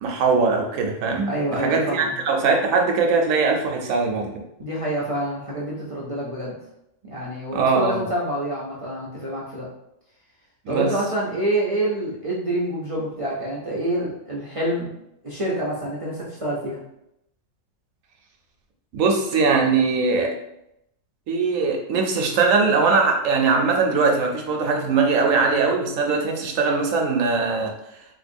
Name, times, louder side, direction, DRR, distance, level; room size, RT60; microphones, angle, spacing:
voice 1, 0.0-1.3 1.6-4.3 7.5-8.0 10.7-10.9 18.9-20.3 21.3-27.7, right 4 dB, 75° right, 2 dB, 1.0 m, -21 dB
voice 2, 1.3-2.1 4.6-6.6 7.0-9.7 10.7-14.9 15.2-16.8, right 1 dB, 40° right, -6 dB, 0.5 m, -27 dB
3.7 x 2.9 x 2.6 m, 0.81 s
omnidirectional pair, 1.4 m